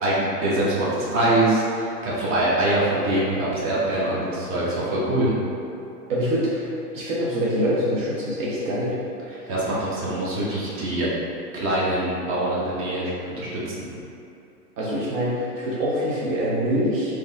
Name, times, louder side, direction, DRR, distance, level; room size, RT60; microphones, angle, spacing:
voice 1, 0.0-5.3 9.3-11.1 11.5-13.1 13.4-13.9, right 1 dB, 25° right, -7 dB, 1.2 m, -24 dB
voice 2, 6.1-9.0 14.8-17.1, equal, 50° right, -7 dB, 1.0 m, -25 dB
4.0 x 3.1 x 3.5 m, 2.7 s
hypercardioid pair, 110°, 49 cm